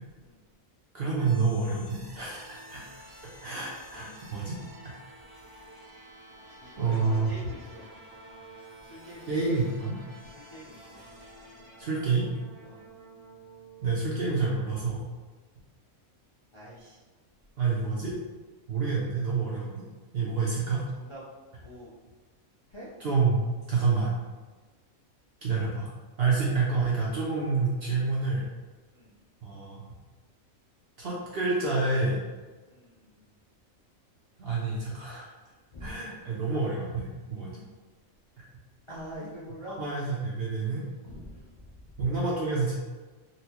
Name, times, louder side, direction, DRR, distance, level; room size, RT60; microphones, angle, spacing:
voice 1, 0.9-2.8 3.4-4.6 4.8-5.0 6.8-7.3 9.3-10.0 11.8-12.3 13.8-15.0 17.6-18.1 18.7-19.9 20.1-20.8 23.0-23.4 23.7-24.1 25.4-25.9 26.2-28.4 29.4-29.8 31.0-32.2 34.4-35.3 35.8-37.6 38.4-38.5 39.8-40.8 42.0-42.8, right 4 dB, 60° right, -5 dB, 0.6 m, -28 dB
sound 1, 1.1-15.0, right 1 dB, 85° right, 1.4 m, -50 dB
voice 2, 6.6-7.8 8.8-9.4 10.3-11.0 12.6-12.8 16.5-17.0 20.9-21.2 21.6-21.9 22.7-22.9 28.9-29.1 32.7-33.3 35.7-35.9 36.2-36.3 38.9-39.8 41.0-41.7, equal, 50° left, -9 dB, 0.3 m, -45 dB
4.0 x 2.1 x 2.8 m, 1.3 s
omnidirectional pair, 1.5 m